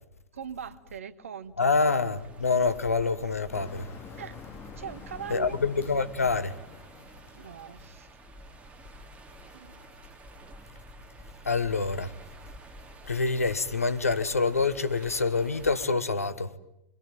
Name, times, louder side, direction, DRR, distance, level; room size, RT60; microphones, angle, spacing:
voice 1, 0.3-1.8 4.1-4.4 4.7-5.6 7.4-8.1 9.5-9.8, right 8 dB, 70° right, 1.3 m, -41 dB
voice 2, 1.6-3.9 5.3-6.6 11.4-12.1 13.0-16.5, left 4 dB, 80° left, 1.1 m, -26 dB
sound 1, 1.8-15.9, right 1 dB, 15° right, 2.9 m, -50 dB
Motor vehicle (road), 3.5-8.4, left 6 dB, 30° left, 2.1 m, -47 dB
23.5 x 21.5 x 9.1 m
figure-of-eight pair, 90°, 8 cm